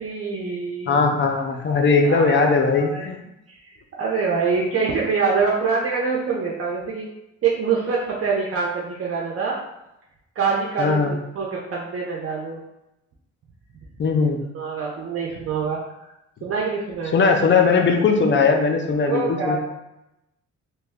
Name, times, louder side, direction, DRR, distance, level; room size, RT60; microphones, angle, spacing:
voice 1, 0.0-1.0 2.0-2.5 2.9-3.1 4.0-7.1 7.4-9.6 10.4-12.6 14.5-15.8 16.4-17.1 19.0-19.6, right 5 dB, 50° right, -3 dB, 0.6 m, -25 dB
voice 2, 0.9-3.2 10.8-11.2 14.0-14.4 17.1-19.6, left 4 dB, 40° left, 4 dB, 0.5 m, -19 dB
2.9 x 2.2 x 3.4 m, 0.89 s
cardioid pair, 90°, 30 cm